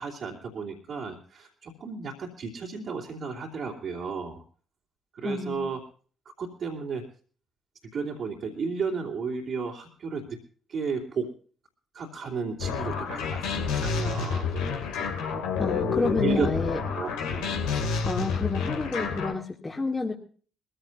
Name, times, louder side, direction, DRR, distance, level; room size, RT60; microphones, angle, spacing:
voice 1, 0.0-4.4 5.1-5.8 6.4-7.1 7.8-10.4 10.7-11.3 11.9-14.8 16.0-16.5 16.9-17.6, right 5 dB, 50° right, -3 dB, 3.1 m, -33 dB
voice 2, 5.2-5.6 15.6-16.8 18.0-20.1, left 3 dB, 20° left, -2 dB, 2.6 m, -29 dB
sound 1, 12.6-19.3, left 5 dB, 70° left, 2.7 m, -29 dB
22.5 x 15.5 x 2.7 m, 0.42 s
figure-of-eight pair, 45°, 0 cm